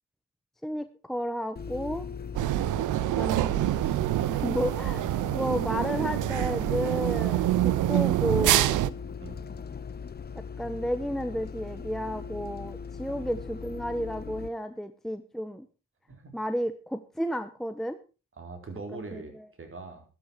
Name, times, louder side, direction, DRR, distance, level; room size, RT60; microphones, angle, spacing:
voice 1, 0.6-2.0 3.2-3.7 4.3-8.9 10.3-15.7 16.3-18.0 18.9-19.2, equal, ahead, 9 dB, 1.0 m, -32 dB
Bus, 1.6-14.5, left 6 dB, 25° left, 0.9 m, -40 dB
sound 1, 2.3-8.9, right 15 dB, 55° right, 0.8 m, -26 dB
voice 2, 9.2-9.6 13.1-13.3 16.1-16.3 18.4-20.0, right 3 dB, 35° right, 6 dB, 4.4 m, -42 dB
12.5 x 12.0 x 4.7 m, 0.33 s
hypercardioid pair, 55°, 37 cm